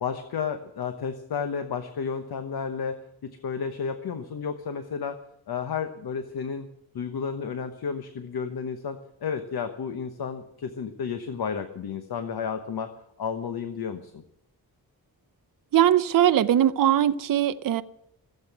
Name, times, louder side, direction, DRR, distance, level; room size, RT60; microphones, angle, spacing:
voice 1, 0.0-5.2 5.5-6.7 6.9-12.9 13.2-14.2, left 6 dB, 80° left, 1.1 m, -32 dB
voice 2, 15.7-17.8, right 11 dB, 60° right, 0.6 m, -20 dB
15.5 x 8.0 x 9.1 m
wide cardioid pair, 155°, 37 cm